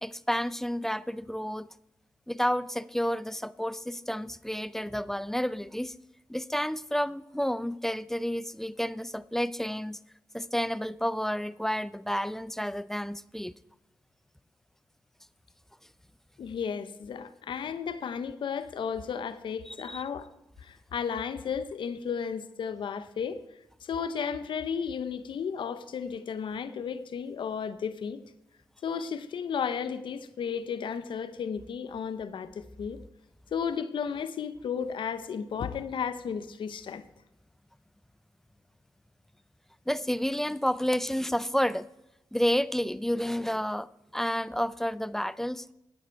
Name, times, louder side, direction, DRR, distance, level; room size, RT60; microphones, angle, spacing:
voice 1, 0.0-1.7 2.3-5.9 6.3-10.0 10.3-13.5 19.7-20.0 39.9-41.9 42.3-43.9 44.1-45.6, equal, 5° left, 0.5 m, -30 dB
voice 2, 16.4-20.3 20.6-23.4 23.8-28.2 28.8-33.0 33.5-37.0, left 7 dB, 75° left, 0.8 m, -34 dB
13.5 x 9.4 x 4.6 m
cardioid pair, 60°, 9 cm